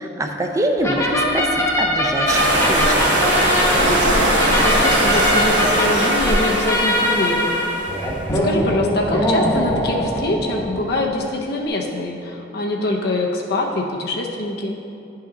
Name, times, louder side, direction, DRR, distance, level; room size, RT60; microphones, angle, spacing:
voice 1, 0.0-3.1, right 1 dB, 15° right, 3 dB, 0.5 m, -24 dB
sound 1, 0.8-11.2, left 1 dB, 15° left, 1.0 m, -22 dB
sound 2, 2.3-8.0, right 1 dB, 65° right, 1.5 m, -19 dB
voice 2, 3.8-7.6 8.4-14.8, left 2 dB, 60° left, 0 dB, 0.6 m, -24 dB
10.0 x 5.7 x 3.8 m, 2.7 s
head